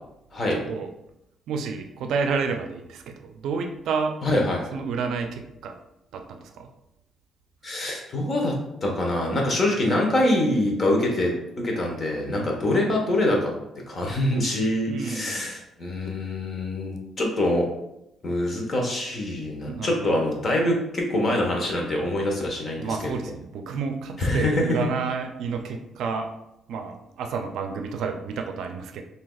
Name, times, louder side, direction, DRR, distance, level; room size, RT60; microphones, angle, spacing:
voice 1, 0.5-0.9 1.5-4.2 4.7-5.8 6.1-6.7 12.3-12.6 14.9-15.5 19.7-20.2 22.8-26.4 26.7-29.0, right 5 dB, 80° right, 6 dB, 0.4 m, -30 dB
voice 2, 4.2-4.7 7.6-13.5 13.9-17.7 18.2-23.3 24.2-24.6, left 1 dB, 40° left, 0 dB, 1.2 m, -25 dB
5.8 x 2.8 x 2.4 m, 0.84 s
cardioid pair, 90°, 0 cm